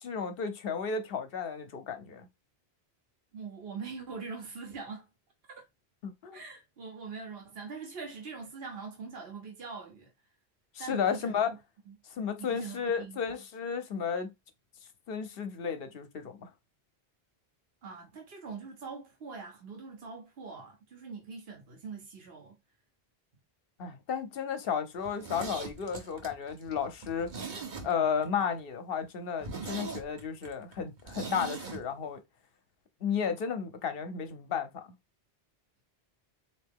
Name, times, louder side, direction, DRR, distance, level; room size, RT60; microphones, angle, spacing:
voice 1, 0.0-2.3 6.0-6.4 10.8-11.5 12.2-14.3 15.1-16.5 23.8-27.5 27.8-32.2 33.0-34.8, left 6 dB, 65° left, 0.9 m, -33 dB
voice 2, 3.3-5.1 6.3-10.1 10.8-11.4 11.9-12.0 12.4-13.2 17.8-22.6, right 5 dB, 70° right, 1.3 m, -43 dB
Zipper (clothing), 25.0-28.3 28.6-28.7 29.0-29.1 29.4-31.8 32.1-32.2, right 4 dB, 50° right, 1.0 m, -41 dB
3.7 x 2.8 x 3.6 m
omnidirectional pair, 1.0 m